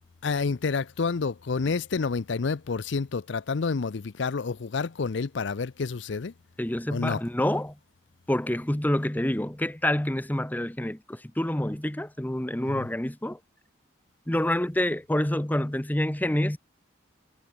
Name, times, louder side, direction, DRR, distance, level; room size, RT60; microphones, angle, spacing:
voice 1, 0.2-6.3 6.9-7.2 12.6-12.9, left 4 dB, 65° left, 0.5 m, -29 dB
voice 2, 6.6-7.7 8.3-13.4 14.3-16.6, left 1 dB, 10° left, 0.7 m, -27 dB
head